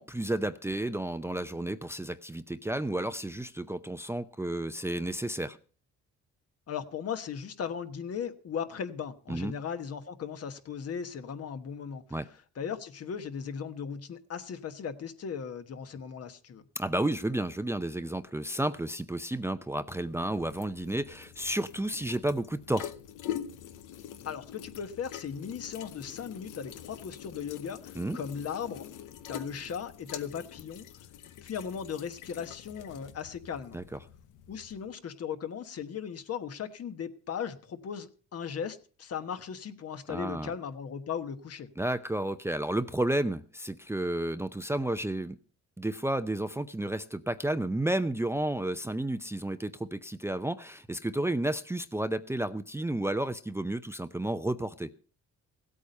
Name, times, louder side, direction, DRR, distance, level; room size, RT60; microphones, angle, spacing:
voice 1, 0.0-5.6 9.3-9.5 12.1-12.3 16.8-22.9 28.0-28.2 33.7-33.8 40.1-40.5 41.8-45.4 45.8-54.9, right 1 dB, 10° right, 0.6 m, -32 dB
voice 2, 6.7-12.0 12.5-16.6 24.2-28.9 29.3-31.0 31.4-33.8 34.5-41.7, left 7 dB, 55° left, 1.3 m, -37 dB
sound 1, 19.9-34.9, left 10 dB, 85° left, 0.9 m, -45 dB
16.0 x 8.5 x 5.4 m
cardioid pair, 90°, 30 cm